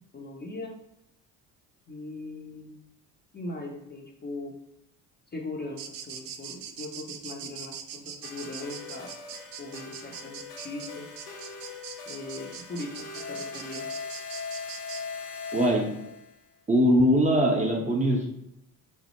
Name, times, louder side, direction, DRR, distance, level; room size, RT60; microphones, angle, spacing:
voice 1, 0.1-0.7 1.9-2.7 3.3-4.5 5.3-9.1 9.6-11.1 12.1-13.9, left 2 dB, 20° left, -1 dB, 0.6 m, -39 dB
sound 1, 5.8-15.0, right 8 dB, 60° right, 0.5 m, -42 dB
sound 2, 8.2-16.3, left 4 dB, 80° left, 0.8 m, -40 dB
voice 2, 15.5-15.9 16.7-18.3, equal, 15° right, -1 dB, 0.6 m, -21 dB
3.1 x 2.0 x 3.0 m, 0.82 s
hypercardioid pair, 60°, 46 cm